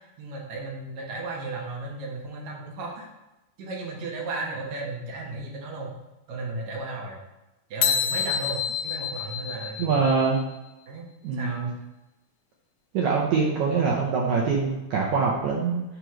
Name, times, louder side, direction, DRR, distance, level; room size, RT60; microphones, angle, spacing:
voice 1, 0.2-3.1 3.6-5.9 6.3-7.2 7.7-10.1 10.9-11.1 11.3-11.8, right 2 dB, 60° right, -2 dB, 2.2 m, -35 dB
sound 1, 7.8-10.4, left 8 dB, 85° left, 1.7 m, -28 dB
voice 2, 9.8-10.4 11.2-11.7 12.9-15.8, right 5 dB, 75° right, -3 dB, 1.7 m, -24 dB
9.6 x 5.1 x 3.1 m, 0.99 s
omnidirectional pair, 4.3 m